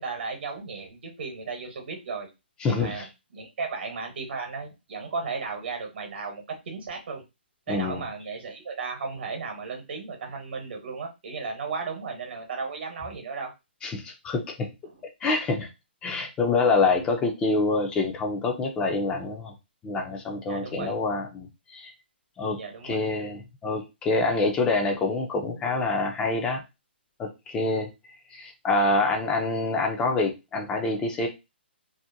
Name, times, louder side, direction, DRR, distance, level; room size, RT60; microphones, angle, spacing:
voice 1, 0.0-2.3 2.7-7.2 7.7-13.5 20.4-20.9 22.6-23.0, right 4 dB, 65° right, 3 dB, 1.0 m, -35 dB
voice 2, 2.6-3.0 7.7-8.0 13.8-14.7 15.2-15.7 16.0-19.5 19.8-21.9 22.4-22.6 22.8-26.6 27.2-27.9 28.3-31.3, left 3 dB, 15° left, 3 dB, 0.4 m, -26 dB
2.6 x 2.1 x 2.6 m, 0.24 s
hypercardioid pair, 150°, 6 cm